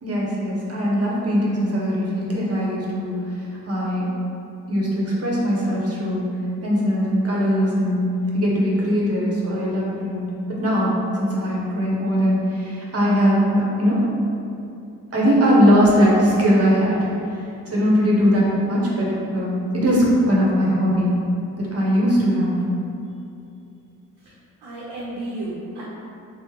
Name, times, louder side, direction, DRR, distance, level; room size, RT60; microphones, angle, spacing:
voice 1, 0.0-4.0 4.7-6.3 6.6-8.0 8.3-10.3 10.6-14.0 15.1-17.4 17.7-21.1 21.5-22.6, equal, 40° right, -5 dB, 0.9 m, -20 dB
voice 2, 24.6-25.8, right 1 dB, 80° right, -8 dB, 0.7 m, -32 dB
3.2 x 2.1 x 3.2 m, 2.6 s
supercardioid pair, 50°, 38 cm